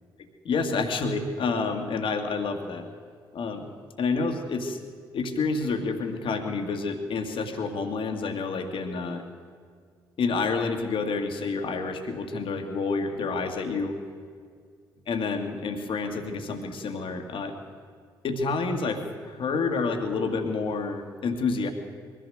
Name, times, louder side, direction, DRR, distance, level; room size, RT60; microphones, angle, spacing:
voice 1, 0.4-2.9 3.3-3.7 4.0-4.8 5.1-9.2 10.2-14.0 15.1-17.6 18.2-21.7, left 4 dB, 50° left, 5 dB, 2.0 m, -29 dB
22.0 x 15.0 x 7.8 m, 2.1 s
figure-of-eight pair, 40°, 11 cm